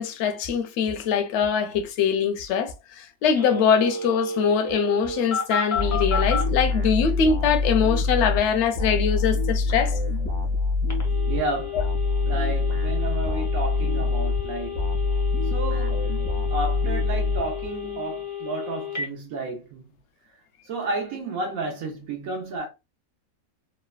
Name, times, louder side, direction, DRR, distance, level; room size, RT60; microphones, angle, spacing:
voice 1, 0.0-10.0, left 7 dB, 65° left, 0.7 m, -23 dB
Telephone, 3.3-6.5 10.9-19.1, left 4 dB, 25° left, 0.4 m, -32 dB
sound 1, 5.7-17.9, left 3 dB, 35° right, 0.8 m, -25 dB
voice 2, 11.3-11.8 12.2-14.9 15.4-16.1 16.5-19.9 20.6-22.7, right 2 dB, 80° right, 1.2 m, -31 dB
3.3 x 2.1 x 2.2 m
omnidirectional pair, 1.5 m